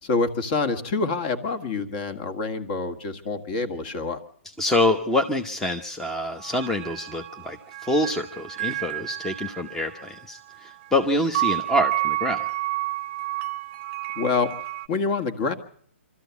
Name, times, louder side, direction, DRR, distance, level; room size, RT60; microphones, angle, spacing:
voice 1, 0.0-4.2 14.2-14.5 14.9-15.5, left 4 dB, 40° left, 10 dB, 1.9 m, -26 dB
voice 2, 4.6-12.4, left 1 dB, 5° left, 4 dB, 0.9 m, -26 dB
sound 1, 6.4-14.9, right 17 dB, 35° right, 0.8 m, -31 dB
24.5 x 13.5 x 8.3 m, 0.62 s
hypercardioid pair, 140°, 7 cm